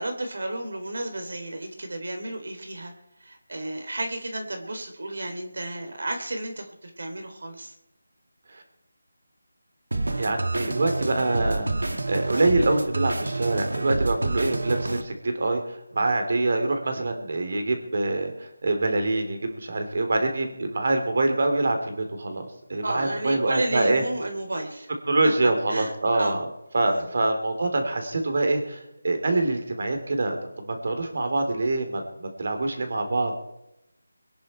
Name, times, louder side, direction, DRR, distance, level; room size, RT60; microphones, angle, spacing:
voice 1, 0.0-2.9 3.2-7.7 22.8-24.9 25.2-26.4 26.9-27.1, right 1 dB, 65° right, 5 dB, 3.5 m, -32 dB
sound 1, 9.9-15.0, right 2 dB, 85° right, 1.9 m, -28 dB
voice 2, 10.2-24.0 25.1-26.4 26.7-28.8 29.0-33.3, right 2 dB, 50° right, 5 dB, 3.6 m, -25 dB
23.5 x 10.5 x 4.5 m, 0.87 s
figure-of-eight pair, 170°, 0 cm